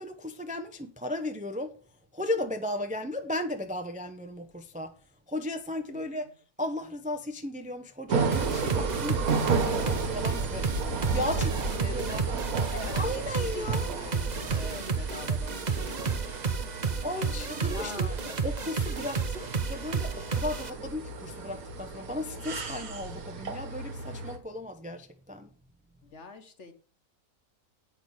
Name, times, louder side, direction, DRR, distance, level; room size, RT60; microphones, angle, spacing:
voice 1, 0.0-1.7 2.1-4.9 5.3-6.3 6.6-10.6 11.1-12.2 12.6-13.9 17.0-25.5, left 1 dB, 10° right, 0.4 m, -35 dB
voice 2, 5.9-6.3 10.7-12.4 12.7-16.6 17.0-18.3 26.0-26.7, left 3 dB, 50° left, 1.5 m, -44 dB
sound 1, 8.1-24.4, right 4 dB, 65° right, 1.6 m, -33 dB
sound 2, 8.3-20.7, right 5 dB, 35° right, 0.8 m, -31 dB
8.7 x 5.9 x 6.2 m
omnidirectional pair, 1.7 m